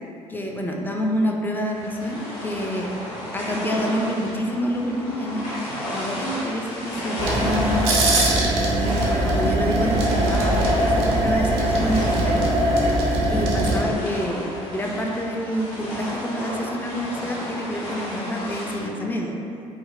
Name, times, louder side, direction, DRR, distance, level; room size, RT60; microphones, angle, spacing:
voice 1, 0.3-2.9 3.3-8.0 8.8-12.5 13.3-19.3, equal, 10° left, 0 dB, 0.4 m, -27 dB
sound 1, 1.7-18.9, left 1 dB, 50° left, 1.3 m, -34 dB
sound 2, 7.2-13.8, right 1 dB, 65° right, 0.5 m, -21 dB
3.8 x 2.0 x 2.4 m, 2.6 s
figure-of-eight pair, 50°, 16 cm